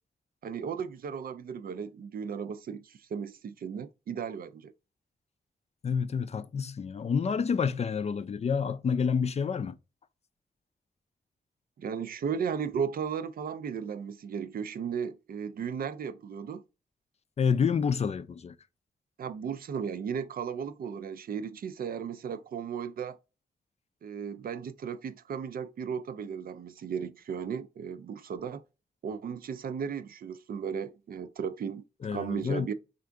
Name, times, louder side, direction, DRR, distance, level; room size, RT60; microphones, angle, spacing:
voice 1, 0.4-4.7 11.8-16.6 19.2-23.2 24.0-28.6 29.0-31.8 32.1-32.7, right 7 dB, 60° right, 0.4 m, -35 dB
voice 2, 5.8-9.8 17.4-18.6 32.0-32.7, left 6 dB, 40° left, 0.4 m, -28 dB
3.6 x 2.6 x 3.3 m
cardioid pair, 70°, 17 cm